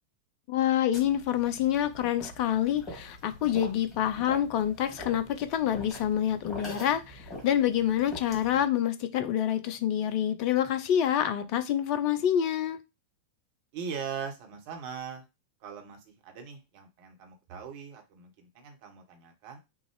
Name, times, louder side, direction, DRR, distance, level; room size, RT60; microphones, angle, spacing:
voice 1, 0.5-12.8, left 10 dB, 45° left, 0.6 m, -27 dB
sound 1, 0.9-8.6, left 1 dB, 25° left, 2.2 m, -44 dB
voice 2, 13.7-15.2 15.6-19.6, right 7 dB, 50° right, 1.4 m, -40 dB
6.1 x 2.5 x 3.3 m
figure-of-eight pair, 90°, 0 cm